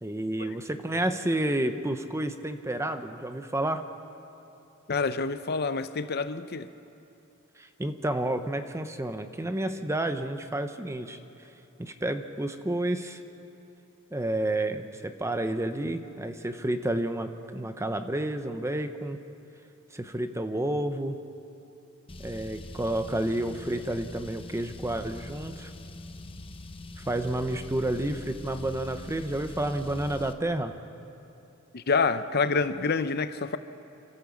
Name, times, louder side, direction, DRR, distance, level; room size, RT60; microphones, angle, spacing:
voice 1, 0.0-3.8 7.6-11.2 11.8-13.2 14.1-19.2 19.9-21.2 22.2-25.7 27.0-30.7, right 1 dB, 15° right, 0.8 m, -30 dB
voice 2, 4.9-6.7 31.7-33.6, left 4 dB, 50° left, 0.7 m, -27 dB
Car, 22.1-30.3, left 1 dB, 25° left, 0.9 m, -43 dB
28.5 x 13.0 x 7.2 m
head